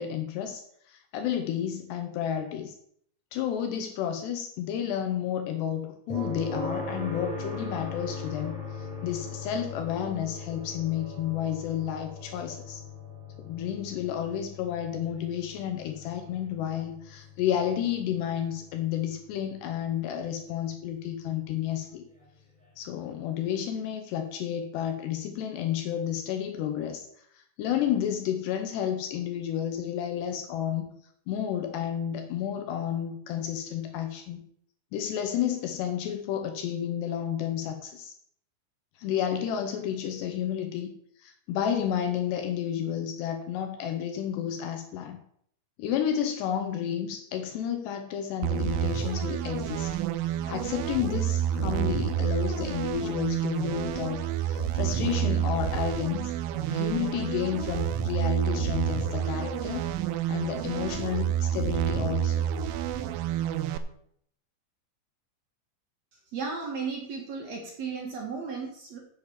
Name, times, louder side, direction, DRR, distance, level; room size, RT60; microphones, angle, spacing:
voice 1, 0.0-2.8 3.3-12.8 13.4-22.0 22.8-27.1 27.3-30.9 31.3-34.4 34.9-38.1 39.0-40.9 41.2-45.2 45.8-50.0 50.2-56.3 56.7-59.9 60.3-62.5, left 9 dB, 80° left, 6 dB, 2.5 m, -31 dB
sound 1, 6.1-19.9 22.2-22.3, left 3 dB, ahead, 4.3 m, -40 dB
sound 2, 48.4-63.8, right 10 dB, 90° right, 3.3 m, -29 dB
voice 2, 66.3-69.0, right 5 dB, 55° right, 0 dB, 1.9 m, -35 dB
8.1 x 7.2 x 7.3 m, 0.67 s
omnidirectional pair, 5.8 m